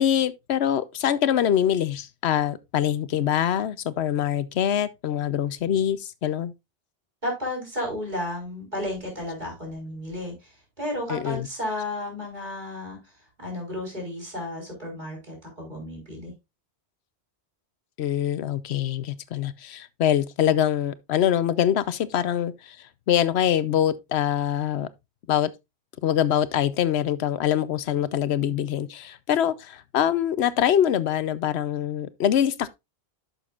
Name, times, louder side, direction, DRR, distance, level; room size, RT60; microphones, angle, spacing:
voice 1, 0.0-6.5 11.1-11.5 18.0-22.8 23.1-24.9 25.3-25.5 26.0-32.7, left 10 dB, 80° left, 0.9 m, -24 dB
voice 2, 7.2-13.0 13.4-16.3, left 1 dB, 45° right, 4.4 m, -33 dB
11.0 x 6.5 x 2.4 m
omnidirectional pair, 1.1 m